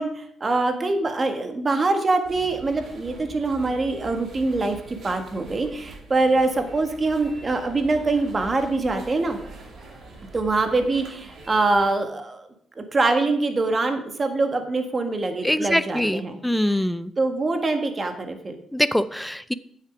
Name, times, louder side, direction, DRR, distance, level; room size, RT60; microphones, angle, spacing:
voice 1, 0.0-9.4 10.3-12.5 12.8-16.4 16.6-16.8 17.2-18.5, right 3 dB, 30° right, 6 dB, 1.6 m, -24 dB
sound 1, 2.2-11.9, right 2 dB, 70° right, 3.1 m, -44 dB
voice 2, 15.4-17.1 18.7-19.5, left 1 dB, 5° left, 14 dB, 0.5 m, -23 dB
9.4 x 7.4 x 5.0 m, 0.69 s
cardioid pair, 90°, 0 cm